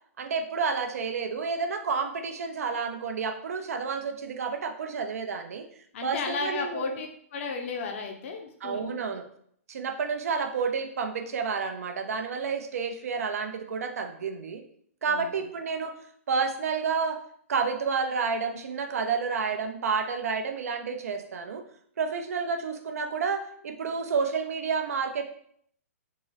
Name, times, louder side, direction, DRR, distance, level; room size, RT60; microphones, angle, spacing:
voice 1, 0.2-5.6 6.0-7.0 8.6-9.2 9.7-14.6 15.0-15.9 16.3-17.2 17.5-21.6 22.0-25.2, right 5 dB, 75° right, 6 dB, 0.5 m, -30 dB
voice 2, 5.9-9.0 15.1-15.3, left 4 dB, 55° left, 3 dB, 0.6 m, -34 dB
3.7 x 2.0 x 3.9 m, 0.64 s
hypercardioid pair, 130°, 8 cm